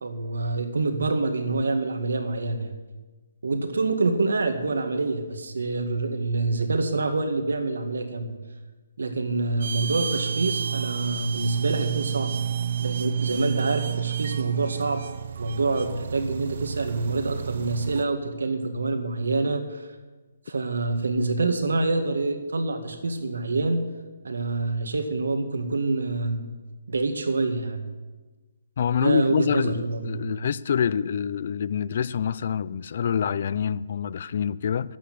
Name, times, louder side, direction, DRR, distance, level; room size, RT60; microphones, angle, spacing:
voice 1, 0.0-2.7 3.4-8.3 9.0-12.4 12.8-15.0 15.4-19.8 20.5-23.8 24.2-26.5 26.9-27.8 29.0-30.2, right 3 dB, 85° right, 1.9 m, -26 dB
sound 1, 9.6-18.0, right 8 dB, 50° right, 0.5 m, -30 dB
voice 2, 28.8-35.0, left 7 dB, 40° left, 0.4 m, -26 dB
12.0 x 8.6 x 7.6 m
hypercardioid pair, 170°, 0 cm